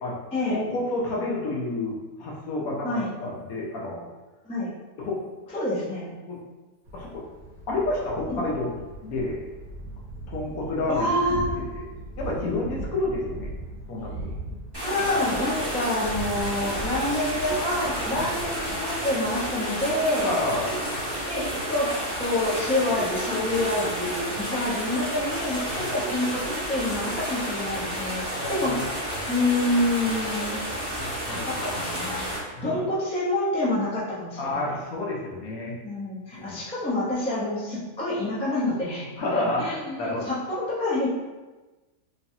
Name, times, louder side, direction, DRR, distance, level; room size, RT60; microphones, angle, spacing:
voice 1, 0.4-4.1 5.0-5.6 6.3-6.4 6.9-7.2 7.7-8.7 9.0-9.4 10.3-11.8 12.2-13.5 13.9-14.3 18.1-18.3 20.2-20.7 25.8-25.9 28.3-28.8 31.0-31.5 32.5-32.7 34.4-35.8 36.3-36.6 39.2-39.6 40.0-40.3, left 2 dB, 70° left, -3 dB, 1.2 m, -30 dB
voice 2, 5.5-6.1 10.9-11.6 14.8-20.4 21.3-21.9 22.2-28.2 28.5-28.7 29.3-30.6 31.4-32.3 32.6-34.6 35.8-41.2, left 1 dB, 5° left, -8 dB, 0.5 m, -27 dB
Thunder, 6.8-20.2, right 1 dB, 75° right, 1.2 m, -39 dB
sound 1, 14.7-32.4, equal, 15° right, 1.2 m, -31 dB
sound 2, 14.9-16.3 17.5-18.2 18.6-19.3 20.7-21.6 23.0-24.8 26.0-27.3, right 4 dB, 40° right, 0.7 m, -39 dB
3.3 x 3.1 x 2.7 m, 1.2 s
omnidirectional pair, 1.6 m